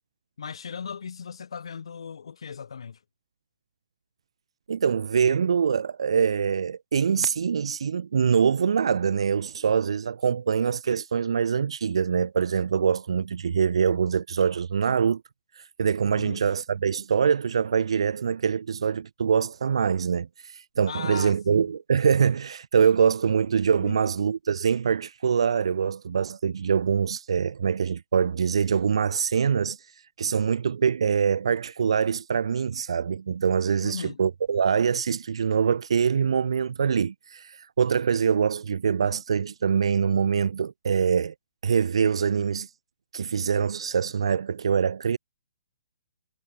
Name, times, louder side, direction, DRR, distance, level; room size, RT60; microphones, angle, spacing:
voice 1, 0.4-3.0 16.1-16.4 20.9-21.7 23.8-24.1 33.8-34.2, left 6 dB, 70° left, 3.3 m, -37 dB
voice 2, 4.7-15.2 15.6-29.9 30.2-41.3 41.6-42.7 43.1-45.2, right 6 dB, 70° right, 0.5 m, -24 dB
hypercardioid pair, 175°, 3 cm